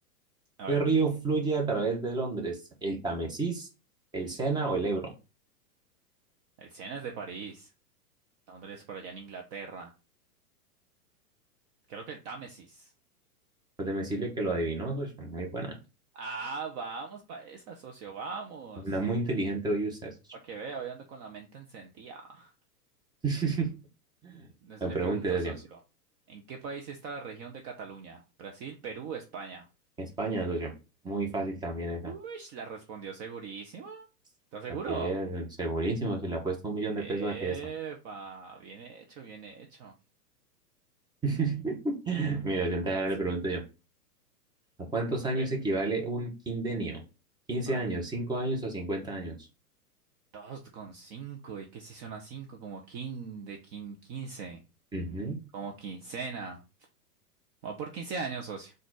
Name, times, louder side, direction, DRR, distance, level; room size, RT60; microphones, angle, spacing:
voice 1, 0.7-3.7 4.1-5.1 13.8-15.8 18.8-20.1 23.2-23.7 24.2-24.4 24.8-25.5 30.0-30.7 31.0-32.1 34.9-37.6 41.2-43.6 44.9-47.0 47.5-49.4 54.9-55.4, right 3 dB, 10° right, 1 dB, 0.9 m, -30 dB
voice 2, 6.6-7.7 8.5-9.9 11.9-12.9 16.1-18.9 20.4-22.5 24.6-25.8 26.3-29.7 32.0-34.1 34.5-35.1 36.9-39.9 45.3-45.5 47.7-47.9 50.3-54.6 55.5-56.6 57.6-58.7, right 5 dB, 30° right, 2 dB, 0.7 m, -40 dB
4.1 x 2.5 x 4.5 m, 0.30 s
hypercardioid pair, 120°, 47 cm